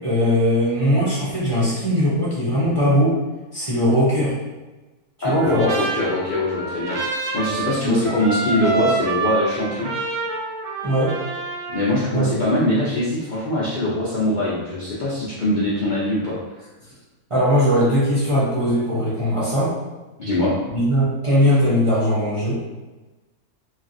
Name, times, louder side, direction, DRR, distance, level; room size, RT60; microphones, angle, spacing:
voice 1, 0.0-3.2 3.5-4.3 5.2-5.7 7.8-8.0 10.8-11.1 12.1-12.5 17.3-19.7 20.7-22.6, equal, 40° right, -10 dB, 0.4 m, -19 dB
voice 2, 5.2-7.0 7.3-9.9 11.7-16.4 20.2-20.6, left 1 dB, 85° left, -7 dB, 0.4 m, -22 dB
Trumpet, 5.2-12.0, right 4 dB, 75° right, 1.0 m, -27 dB
3.2 x 2.4 x 2.5 m, 1.2 s
omnidirectional pair, 1.6 m